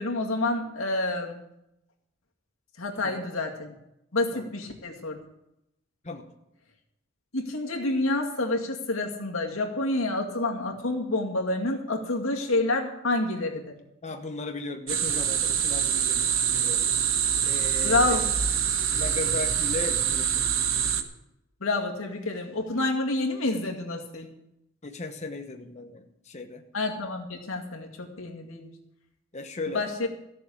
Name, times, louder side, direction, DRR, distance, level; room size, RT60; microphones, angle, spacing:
voice 1, 0.0-1.4 2.8-3.7 4.1-5.1 7.3-13.7 17.8-18.5 21.6-24.3 26.7-28.7 29.7-29.9, left 2 dB, 80° left, 1 dB, 2.2 m, -28 dB
voice 2, 14.0-16.8 17.4-18.2 18.9-20.5 24.8-26.6 29.3-29.9, left 3 dB, 35° left, 4 dB, 1.0 m, -36 dB
sound 1, 14.9-21.0, right 8 dB, 75° right, 1.2 m, -25 dB
14.5 x 6.8 x 8.5 m, 0.84 s
head